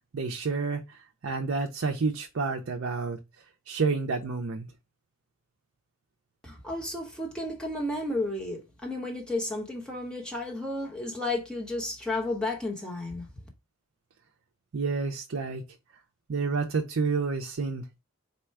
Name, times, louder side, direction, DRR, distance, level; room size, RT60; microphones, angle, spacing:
voice 1, 0.1-3.2 3.7-4.7 14.7-15.6 16.3-17.8, right 4 dB, 60° right, 0.5 m, -29 dB
voice 2, 6.4-13.3, left 2 dB, 5° left, 1.0 m, -32 dB
4.2 x 2.2 x 4.5 m
head